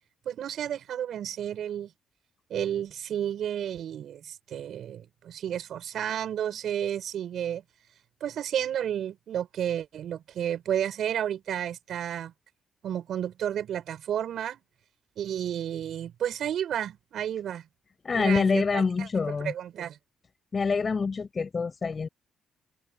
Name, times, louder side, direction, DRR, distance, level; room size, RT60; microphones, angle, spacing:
voice 1, 0.2-1.9 2.5-7.6 8.2-12.3 12.8-14.6 15.2-17.6 18.1-19.1 19.4-20.0, right 10 dB, 70° right, 6.8 m, -32 dB
voice 2, 18.0-19.5 20.5-22.1, left 5 dB, 35° left, 7.7 m, -26 dB
cardioid pair, 90°, 0 cm